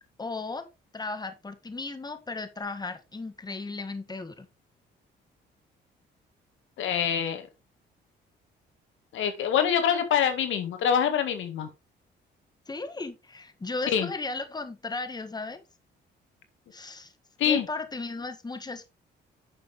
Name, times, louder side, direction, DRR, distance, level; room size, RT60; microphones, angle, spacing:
voice 1, 0.2-0.7 0.9-4.5 12.7-15.6 16.7-17.1 17.4-18.9, left 3 dB, 20° left, 9 dB, 1.6 m, -35 dB
voice 2, 6.8-7.5 9.1-11.7 13.9-14.1 17.4-17.7, left 8 dB, 80° left, 8 dB, 1.9 m, -25 dB
9.8 x 6.8 x 3.4 m, 0.26 s
cardioid pair, 90°, 20 cm